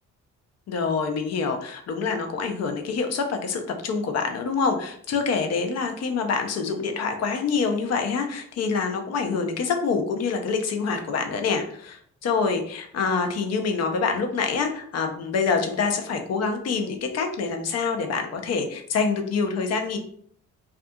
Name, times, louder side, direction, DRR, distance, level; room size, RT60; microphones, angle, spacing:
voice 1, 0.7-20.0, left 5 dB, 55° left, 5 dB, 0.6 m, -26 dB
2.4 x 2.3 x 2.6 m, 0.62 s
cardioid pair, 90°, 30 cm